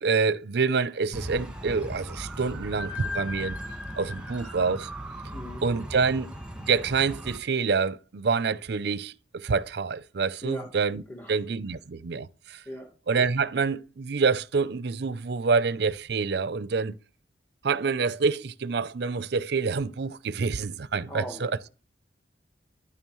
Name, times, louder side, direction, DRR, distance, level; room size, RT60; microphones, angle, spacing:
voice 1, 0.0-3.6 4.0-4.9 5.6-6.3 6.7-11.0 11.3-12.6 13.1-17.0 17.6-21.5, right 5 dB, 65° right, 0.5 m, -27 dB
sound 1, 1.1-7.4, equal, 5° right, 1.5 m, -37 dB
voice 2, 5.3-5.6 10.4-10.7 11.1-11.4 12.6-12.9 21.1-21.7, equal, 10° left, 1.3 m, -39 dB
10.0 x 8.9 x 3.1 m
head